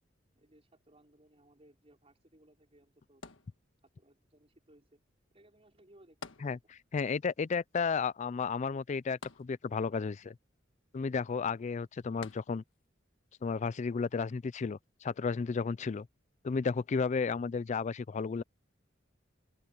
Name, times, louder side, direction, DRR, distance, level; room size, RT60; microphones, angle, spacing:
voice 1, 0.3-3.2 3.9-5.0 5.3-6.7, right 1 dB, 30° right, 4.9 m, -63 dB
sound 1, 3.2-4.1 6.2-7.1 7.4-7.5 9.2-10.1 12.2-12.9 13.6-13.7, left 4 dB, 80° left, 1.5 m, -50 dB
voice 2, 6.9-10.4 10.9-12.6 13.4-16.1 16.4-18.4, left 5 dB, 40° left, 0.4 m, -33 dB
head